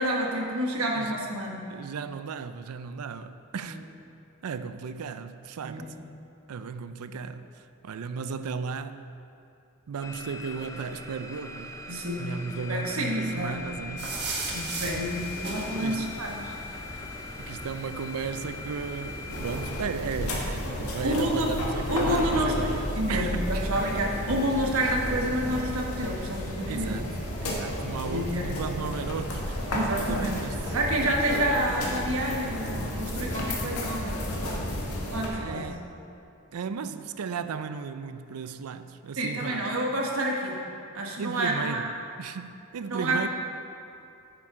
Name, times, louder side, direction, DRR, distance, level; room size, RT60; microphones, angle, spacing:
voice 1, 0.0-1.6 5.6-5.9 11.9-12.3 12.7-13.6 14.5-16.5 21.0-21.5 21.9-22.5 22.9-27.0 28.1-28.9 29.7-30.4 30.7-34.2 35.1-35.7 39.2-40.6 40.9-41.8 42.9-43.3, right 1 dB, 70° right, 1.2 m, -29 dB
voice 2, 1.7-3.8 4.4-5.9 6.5-9.0 9.9-11.7 12.2-14.5 15.7-16.2 17.4-23.7 24.8-24.9 26.7-29.7 30.0-30.7 35.4-35.9 36.5-39.7 41.2-41.9 42.2-43.3, right 5 dB, 90° right, 0.4 m, -35 dB
sound 1, 10.0-19.8, left 4 dB, 15° left, 0.5 m, -41 dB
sound 2, 14.0-19.7, right 2 dB, 55° right, 1.5 m, -38 dB
sound 3, 19.3-35.3, equal, 90° left, 1.7 m, -32 dB
10.0 x 8.5 x 3.7 m
head